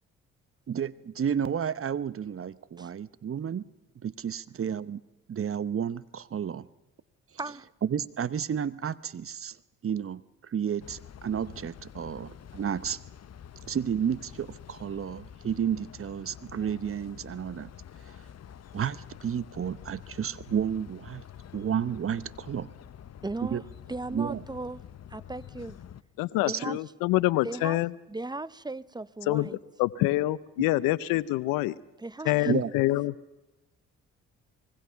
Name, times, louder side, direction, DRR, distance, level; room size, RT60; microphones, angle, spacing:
voice 1, 0.7-3.6 4.0-5.0 5.3-6.7 7.8-9.6 9.8-13.0 13.6-17.7 18.7-21.2 21.5-22.7 23.5-23.6 24.1-24.4 26.5-26.8 32.4-32.7, right 8 dB, 40° right, 1.0 m, -31 dB
sound 1, 10.8-26.0, left 9 dB, 50° left, 1.1 m, -48 dB
voice 2, 23.2-24.8 25.1-25.8 26.4-26.8 27.4-27.8 28.1-29.6 32.0-32.5, right 2 dB, 10° right, 0.8 m, -37 dB
voice 3, 26.2-27.9 29.3-29.5 29.8-31.8 32.3-33.1, left 18 dB, 85° left, 0.7 m, -26 dB
25.0 x 21.0 x 5.8 m
supercardioid pair, 60°, 33 cm